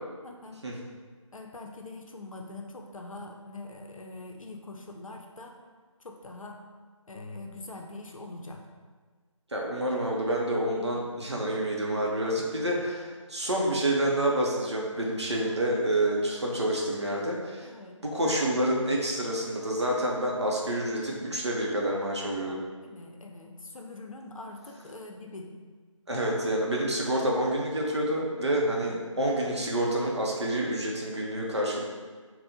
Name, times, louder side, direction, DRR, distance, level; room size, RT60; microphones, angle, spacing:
voice 1, 0.2-0.6 1.3-5.5 6.0-6.6 7.1-8.6 10.8-11.0 12.7-12.9 15.4-15.6 17.6-18.0 22.4-25.5 28.8-29.0, left 2 dB, 80° left, 2 dB, 0.5 m, -43 dB
voice 2, 9.5-17.7 18.0-22.6 26.1-31.8, right 1 dB, 55° right, -3 dB, 0.6 m, -28 dB
4.1 x 2.1 x 2.6 m, 1.5 s
figure-of-eight pair, 160°, 17 cm